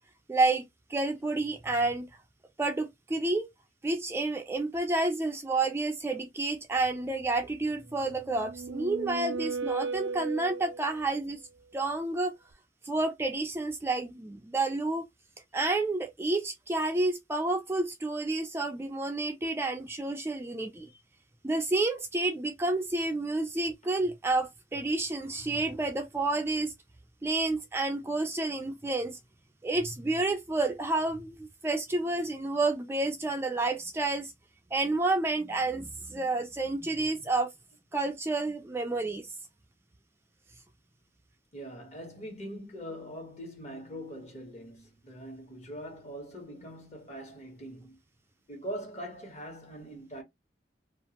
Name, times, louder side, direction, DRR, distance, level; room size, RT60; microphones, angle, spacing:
voice 1, 0.3-0.6 0.9-2.1 2.6-3.5 3.8-11.4 11.7-12.3 12.8-15.0 15.5-20.9 21.4-26.7 27.2-29.2 29.6-34.3 34.7-37.5 37.9-39.3, right 2 dB, 15° right, 0.3 m, -30 dB
sound 1, 8.0-11.1, right 4 dB, 85° right, 0.4 m, -36 dB
voice 2, 41.5-48.0 48.5-50.2, equal, 40° left, 1.3 m, -42 dB
2.6 x 2.4 x 2.8 m
head